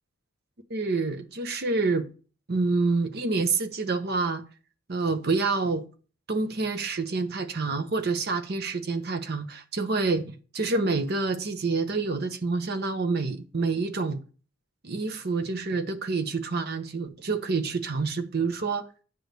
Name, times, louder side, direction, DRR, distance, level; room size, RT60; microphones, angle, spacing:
voice 1, 0.7-2.1 2.5-4.4 4.9-5.8 6.3-14.2 14.8-18.9, right 3 dB, 50° right, 0.8 m, -27 dB
9.3 x 3.1 x 6.5 m
head